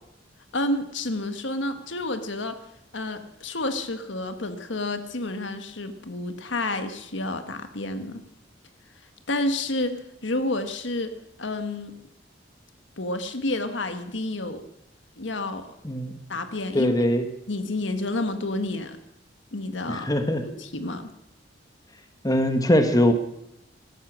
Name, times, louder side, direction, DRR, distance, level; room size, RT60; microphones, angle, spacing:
voice 1, 0.5-2.6 2.9-8.2 9.3-11.1 11.4-12.0 13.0-14.6 15.2-15.7 16.3-16.9 17.5-19.0 19.5-20.1 20.4-21.1, left 2 dB, 85° left, 8 dB, 1.6 m, -29 dB
voice 2, 16.7-17.3 19.9-20.4 22.2-23.1, left 1 dB, 20° left, 7 dB, 1.3 m, -21 dB
17.0 x 13.5 x 6.3 m, 0.83 s
head